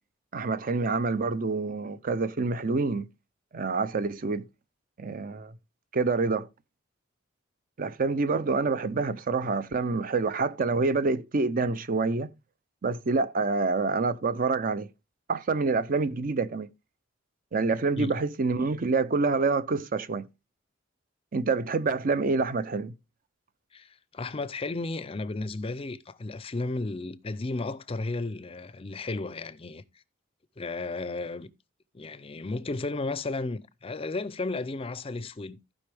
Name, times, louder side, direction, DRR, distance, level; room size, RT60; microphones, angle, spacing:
voice 1, 0.3-3.1 3.5-4.5 5.0-5.5 5.9-6.5 7.8-12.3 12.8-14.9 15.3-16.7 17.5-20.2 21.3-22.9, right 3 dB, 45° right, 0.5 m, -27 dB
voice 2, 23.7-29.8 30.6-31.5 31.9-35.7, left 3 dB, 30° left, 0.5 m, -34 dB
15.0 x 5.2 x 3.4 m
head